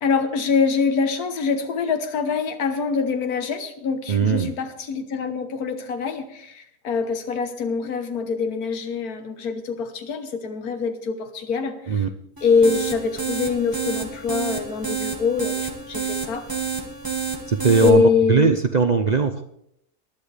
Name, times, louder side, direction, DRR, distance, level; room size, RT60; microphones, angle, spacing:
voice 1, 0.0-12.1 12.4-16.5 17.8-18.5, left 5 dB, 70° left, 7 dB, 1.7 m, -24 dB
voice 2, 4.1-4.5 11.9-12.1 17.5-18.0 18.3-19.4, right 5 dB, 60° right, 7 dB, 0.4 m, -19 dB
sound 1, 12.4-17.9, right 6 dB, 15° right, 1.5 m, -29 dB
20.0 x 11.5 x 3.4 m, 0.75 s
omnidirectional pair, 1.6 m